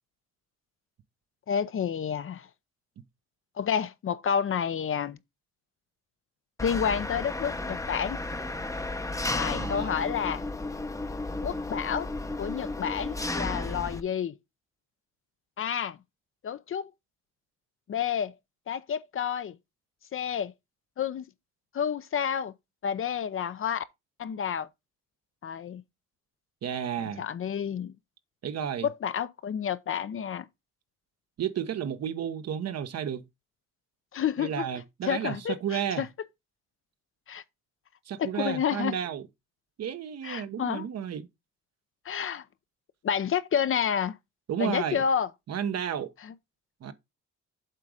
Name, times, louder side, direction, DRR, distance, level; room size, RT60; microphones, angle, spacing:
voice 1, 1.5-2.5 3.6-5.2 6.6-8.2 9.3-10.4 11.4-12.1 12.4-14.4 15.6-16.0 16.4-16.9 17.9-18.3 18.7-19.5 20.1-20.5 21.0-21.3 21.7-22.5 22.8-23.8 24.2-24.7 25.4-25.8 27.0-27.9 28.8-30.5 34.1-34.7 35.0-36.1 37.3-37.4 38.2-38.9 40.2-40.9 42.1-42.4 43.0-44.1 44.6-45.3 46.2-46.3, left 8 dB, 45° left, 0.6 m, -30 dB
Engine, 6.6-14.0, left 2 dB, 10° left, 0.7 m, -33 dB
voice 2, 9.5-10.0 26.6-27.2 28.4-28.9 31.4-33.2 34.4-36.0 38.1-39.2 39.8-41.3 44.5-45.0 45.5-46.1 46.8-46.9, right 8 dB, 55° right, 0.9 m, -32 dB
7.6 x 3.8 x 4.8 m
cardioid pair, 90°, 30 cm